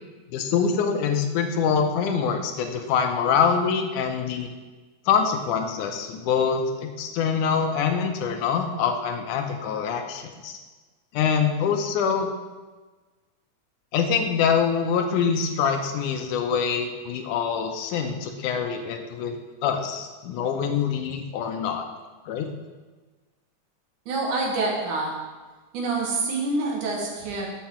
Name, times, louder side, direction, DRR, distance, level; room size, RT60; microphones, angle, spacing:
voice 1, 0.3-4.5 5.1-10.6 11.1-12.3 13.9-19.4 19.6-21.9 22.3-22.5, left 6 dB, 85° left, 5 dB, 2.3 m, -25 dB
voice 2, 24.1-25.1 25.7-27.5, right 3 dB, 85° right, -1 dB, 2.9 m, -26 dB
7.4 x 6.8 x 4.4 m, 1.3 s
omnidirectional pair, 3.5 m